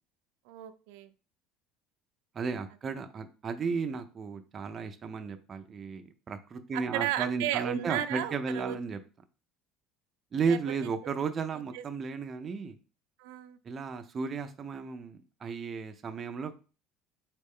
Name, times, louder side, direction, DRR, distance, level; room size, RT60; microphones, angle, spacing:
voice 1, 0.5-1.1 6.7-8.8 10.5-10.6 11.7-11.8 13.2-13.6, right 12 dB, 90° right, 10 dB, 0.4 m, -34 dB
voice 2, 2.3-9.0 10.3-12.8 13.6-16.5, right 5 dB, 20° right, 7 dB, 0.4 m, -34 dB
4.4 x 3.2 x 3.6 m, 0.35 s
cardioid pair, 180°, 0 cm